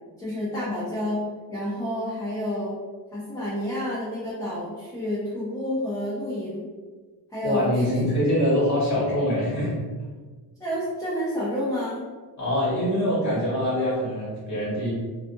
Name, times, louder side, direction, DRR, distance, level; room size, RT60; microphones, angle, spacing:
voice 1, 0.2-1.2 1.5-2.8 3.1-6.7 7.3-8.0 10.6-12.1, left 1 dB, 10° left, -9 dB, 0.5 m, -29 dB
voice 2, 7.4-9.8 12.4-14.9, left 1 dB, 40° left, -8 dB, 1.4 m, -24 dB
2.5 x 2.4 x 2.6 m, 1.4 s
wide cardioid pair, 155°, 43 cm